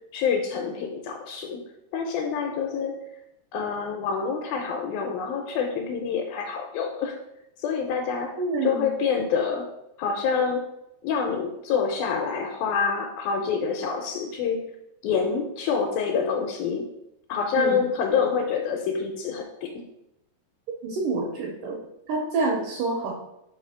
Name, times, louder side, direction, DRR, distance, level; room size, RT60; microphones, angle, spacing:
voice 1, 0.1-1.6 1.9-3.0 3.5-7.2 7.6-9.7 10.0-10.7 11.0-14.6 15.0-16.9 17.3-19.8, left 6 dB, 80° left, 3 dB, 2.2 m, -27 dB
voice 2, 8.4-8.9 17.6-17.8 20.8-21.8 22.1-23.1, right 3 dB, 80° right, -1 dB, 1.9 m, -27 dB
5.6 x 3.7 x 5.5 m, 0.86 s
omnidirectional pair, 4.6 m